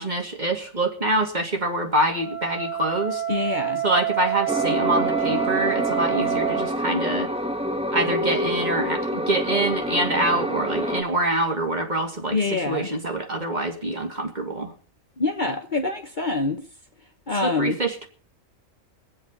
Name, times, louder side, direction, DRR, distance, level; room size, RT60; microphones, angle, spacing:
voice 1, 0.0-3.2 3.8-7.3 7.9-14.7 17.4-18.1, right 1 dB, 30° right, 2.5 m, -25 dB
Wind instrument woodwind instrument, 2.1-6.7, right 12 dB, 65° right, 4.0 m, -27 dB
voice 2, 3.3-3.8 12.3-12.9 15.2-16.6 17.3-17.8, left 3 dB, 40° left, 1.2 m, -25 dB
sound 1, 4.5-11.0, equal, 5° right, 1.0 m, -27 dB
23.0 x 8.3 x 5.4 m
omnidirectional pair, 1.4 m